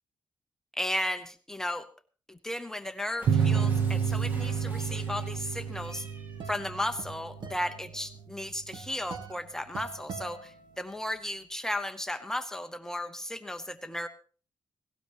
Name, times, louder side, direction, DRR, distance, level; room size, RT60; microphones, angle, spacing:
voice 1, 0.7-1.9 2.3-6.1 6.5-14.1, left 1 dB, 5° left, 7 dB, 0.8 m, -35 dB
Cat, 3.2-6.5, right 1 dB, 25° right, 1.9 m, -47 dB
sound 1, 3.3-8.4, right 6 dB, 90° right, 0.8 m, -30 dB
sound 2, 6.0-11.2, right 5 dB, 65° right, 1.8 m, -45 dB
18.0 x 17.5 x 3.0 m, 0.39 s
wide cardioid pair, 175°, 8 cm